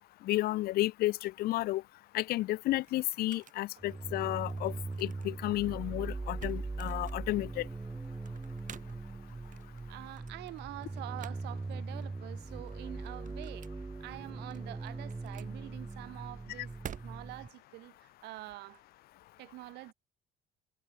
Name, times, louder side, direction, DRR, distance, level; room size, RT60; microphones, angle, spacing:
voice 1, 0.2-1.8 2.1-4.7 5.0-7.7, left 17 dB, 65° left, 0.4 m, -32 dB
sound 1, 2.0-17.5, right 9 dB, 50° right, 7.3 m, -53 dB
sound 2, 3.8-17.5, right 3 dB, 15° right, 1.8 m, -41 dB
voice 2, 9.9-13.7 14.0-18.8 19.4-19.9, right 19 dB, 90° right, 4.4 m, -46 dB
cardioid pair, 110°, 17 cm